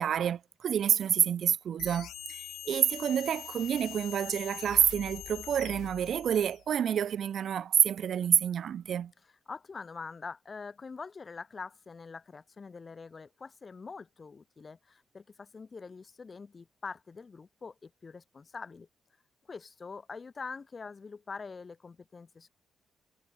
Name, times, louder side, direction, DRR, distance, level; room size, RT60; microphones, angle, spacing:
voice 1, 0.0-9.1, right 9 dB, 65° right, 1.4 m, -28 dB
sound 1, 1.8-6.7, left 12 dB, 85° left, 1.7 m, -44 dB
voice 2, 9.5-18.9 19.5-22.5, left 4 dB, 35° left, 3.6 m, -44 dB
cardioid pair, 95°, 0 cm